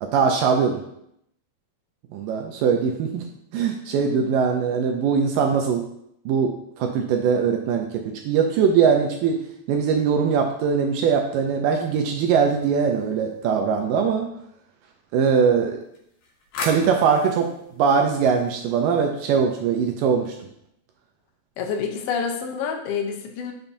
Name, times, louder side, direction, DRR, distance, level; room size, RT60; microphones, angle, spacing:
voice 1, 0.0-0.8 2.1-3.3 3.5-5.8 6.3-6.5 6.8-9.4 9.7-14.3 15.1-15.8 16.6-17.5 17.8-20.4, right 6 dB, 80° right, 3 dB, 2.0 m, -21 dB
sound 1, 11.8-13.5 15.8-19.1, left 3 dB, 70° left, 3.0 m, -39 dB
voice 2, 21.6-23.5, left 6 dB, 90° left, 4 dB, 2.7 m, -27 dB
7.2 x 6.8 x 2.6 m, 0.75 s
omnidirectional pair, 4.3 m